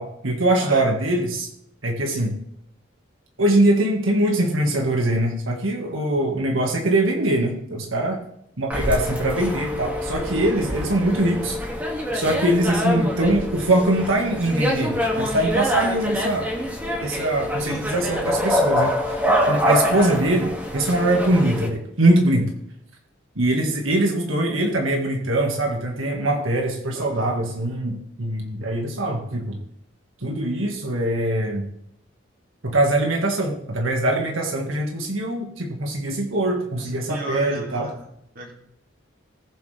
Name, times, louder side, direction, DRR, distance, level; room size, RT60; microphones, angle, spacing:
voice 1, 0.0-1.5 1.8-2.4 3.4-8.2 8.6-11.6 12.1-16.5 17.0-18.9 19.5-22.5 23.4-29.6 30.2-31.6 32.6-37.9, right 1 dB, 90° right, 1 dB, 2.0 m, -22 dB
sound 1, 8.7-21.7, left 1 dB, 10° right, 2.4 m, -25 dB
voice 2, 17.6-18.1 26.9-27.3 36.8-38.5, right 1 dB, 45° right, -1 dB, 2.8 m, -36 dB
20.0 x 7.5 x 3.5 m, 0.73 s
head